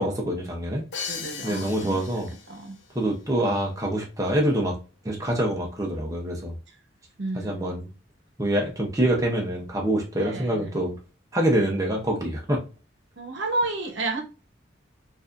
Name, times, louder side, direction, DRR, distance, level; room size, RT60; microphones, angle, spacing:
voice 1, 0.0-1.1 1.4-2.3 2.9-4.7 5.0-6.5 7.3-7.9 8.4-11.0 11.3-12.6, right 1 dB, 15° right, 0.7 m, -25 dB
Crash cymbal, 0.9-2.8, left 6 dB, 60° left, 0.7 m, -37 dB
voice 2, 1.1-2.2 2.5-2.8 7.2-7.7 10.2-10.7 13.2-14.2, right 2 dB, 70° right, 0.9 m, -31 dB
4.7 x 2.6 x 2.5 m
head